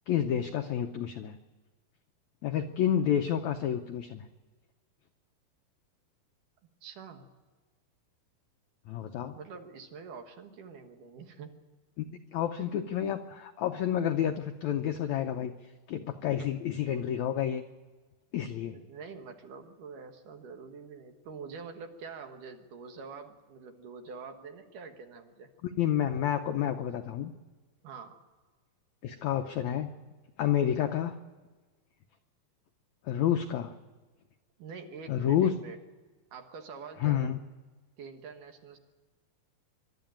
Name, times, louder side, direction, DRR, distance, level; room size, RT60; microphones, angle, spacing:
voice 1, 0.1-1.4 2.4-4.3 8.9-9.3 12.0-15.5 15.9-17.6 18.3-18.8 25.6-27.3 29.0-29.9 30.4-31.1 33.0-33.7 35.1-35.5 37.0-37.4, left 10 dB, 85° left, 7 dB, 1.6 m, -29 dB
voice 2, 6.8-7.3 9.4-11.6 16.4-16.5 18.7-25.5 27.8-28.2 34.6-35.8 36.3-37.3 38.0-38.8, right 5 dB, 65° right, 5 dB, 2.8 m, -46 dB
24.5 x 12.0 x 9.0 m, 1.3 s
omnidirectional pair, 4.3 m